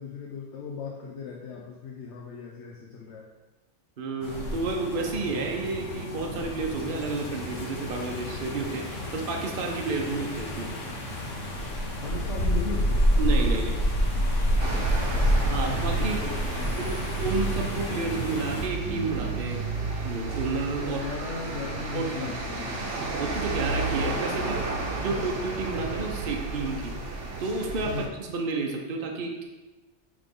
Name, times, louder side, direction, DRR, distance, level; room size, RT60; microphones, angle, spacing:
voice 1, 0.0-3.3 10.0-10.2 12.0-13.0 14.8-16.9 20.8-23.1 25.1-25.3 27.9-28.1, left 5 dB, 70° left, -2 dB, 1.1 m, -38 dB
voice 2, 4.0-10.7 13.2-13.8 15.4-16.2 16.8-19.7 20.0-21.0 21.9-22.3 22.9-24.6 25.0-26.9 27.4-29.4, right 3 dB, 50° right, 1 dB, 1.0 m, -31 dB
sound 1, 4.2-18.7, equal, 85° left, 1.5 m, -28 dB
sound 2, 14.6-28.1, right 3 dB, 75° right, 1.3 m, -32 dB
9.1 x 3.8 x 3.7 m, 1.2 s
omnidirectional pair, 1.2 m